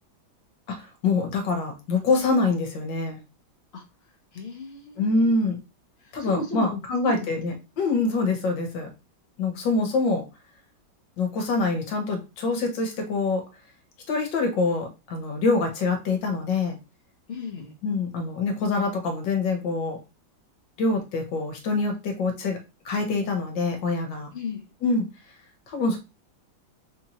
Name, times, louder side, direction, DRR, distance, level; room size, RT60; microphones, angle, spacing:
voice 1, 1.0-3.2 5.0-5.6 6.1-8.9 9.4-10.2 11.2-13.4 14.1-16.8 17.8-20.0 20.8-22.6 22.8-24.3 24.8-25.0 25.7-26.0, left 3 dB, 65° left, 3 dB, 1.6 m, -25 dB
voice 2, 4.3-5.6 6.0-7.3 17.3-17.7 24.3-24.6, left 3 dB, 85° left, 1 dB, 0.5 m, -35 dB
4.2 x 2.7 x 2.9 m, 0.27 s
omnidirectional pair, 2.2 m